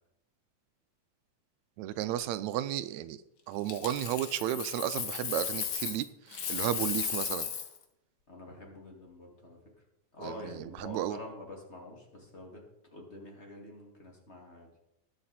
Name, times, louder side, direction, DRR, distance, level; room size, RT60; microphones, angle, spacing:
voice 1, 1.8-3.2 3.5-7.5 10.2-11.2, right 12 dB, 80° right, 13 dB, 1.8 m, -33 dB
Coin (dropping), 3.7-6.0 6.3-7.8 10.6-10.8, left 7 dB, 60° left, 1.1 m, -35 dB
voice 2, 8.3-9.8 10.1-12.6 12.9-14.7, left 1 dB, 25° left, 0 dB, 2.3 m, -47 dB
20.0 x 6.7 x 4.2 m, 0.83 s
omnidirectional pair, 3.3 m